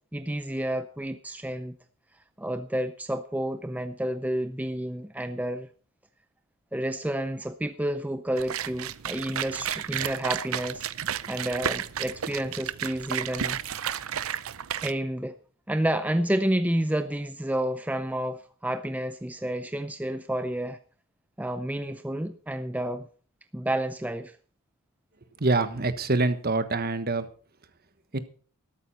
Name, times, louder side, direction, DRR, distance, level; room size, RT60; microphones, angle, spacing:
voice 1, 0.1-1.8 2.4-5.7 6.7-10.9 11.3-13.6 14.8-15.3 15.7-20.8 21.4-23.1 23.5-24.3, right 1 dB, 5° right, 10 dB, 0.5 m, -30 dB
sound 1, 8.4-14.9, right 9 dB, 70° right, 0.6 m, -32 dB
voice 2, 25.4-27.3 28.1-28.2, right 3 dB, 45° right, 11 dB, 1.3 m, -25 dB
13.0 x 12.0 x 4.2 m, 0.43 s
head